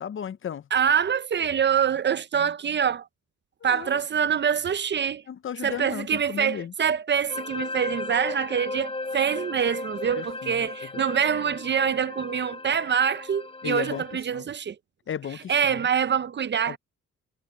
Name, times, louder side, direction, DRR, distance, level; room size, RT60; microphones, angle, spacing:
voice 1, 0.0-0.7 3.6-4.0 5.3-6.7 10.2-10.9 13.6-14.0 14.3-14.5 15.1-15.9 16.7-16.8, left 8 dB, 40° left, 0.7 m, -35 dB
voice 2, 0.7-3.1 3.6-5.2 5.6-14.8 15.5-16.8, right 7 dB, 35° right, 0.7 m, -25 dB
sound 1, 7.3-14.1, left 2 dB, 20° left, 5.4 m, -36 dB
cardioid pair, 90°, 30 cm